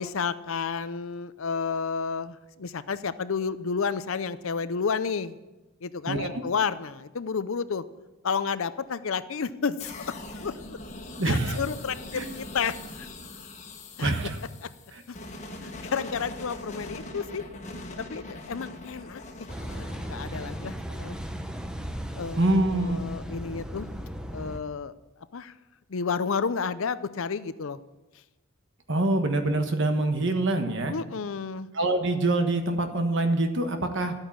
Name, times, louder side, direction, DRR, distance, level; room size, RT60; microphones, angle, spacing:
voice 1, 0.0-5.4 5.8-7.8 8.2-10.1 10.4-10.8 11.2-13.1 14.0-14.1 14.6-14.7 15.1-15.2 15.6-17.4 17.7-21.2 22.1-23.9 24.3-24.9 25.3-25.5 25.9-27.8 30.9-31.7, left 5 dB, 65° left, 14 dB, 0.6 m, -31 dB
sound 1, 9.8-21.6, left 2 dB, 30° left, 1.4 m, -42 dB
voice 2, 11.2-11.6 12.1-12.3 14.0-14.4 22.4-23.0 28.9-30.9 31.7-34.1, right 2 dB, 55° right, 6 dB, 1.4 m, -25 dB
Car passing by / Idling / Accelerating revving vroom, 19.5-24.6, equal, 5° right, 0.7 m, -36 dB
12.5 x 8.9 x 7.4 m, 1.1 s
head